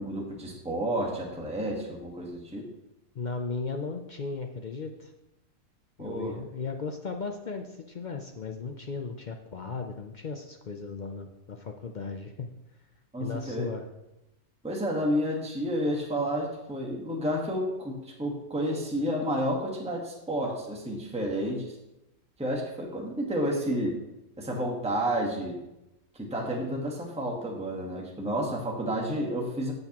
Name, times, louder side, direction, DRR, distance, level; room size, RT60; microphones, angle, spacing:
voice 1, 0.0-2.7 6.0-6.4 13.1-13.7 14.6-21.7 22.4-24.0 24.4-25.6 26.1-29.7, equal, 5° right, -1 dB, 1.2 m, -30 dB
voice 2, 3.1-5.1 6.0-12.5 13.2-13.8, left 4 dB, 65° left, 4 dB, 0.4 m, -36 dB
14.0 x 6.6 x 3.0 m, 0.93 s
omnidirectional pair, 1.5 m